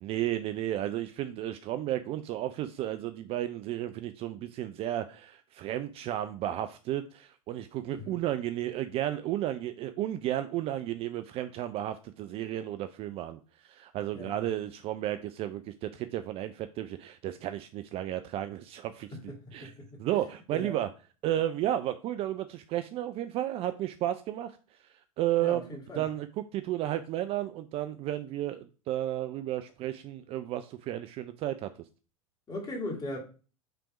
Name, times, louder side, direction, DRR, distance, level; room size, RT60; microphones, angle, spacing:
voice 1, 0.0-19.7 20.0-20.9 21.2-24.5 25.2-25.7 26.0-26.3 26.5-31.7, right 13 dB, 30° right, 0.4 m, -33 dB
voice 2, 7.9-8.2 14.1-14.5 19.1-20.0 20.5-20.8 25.4-26.1 32.5-33.2, left 1 dB, 20° left, 2.3 m, -39 dB
5.7 x 3.4 x 5.0 m
figure-of-eight pair, 90°, 18 cm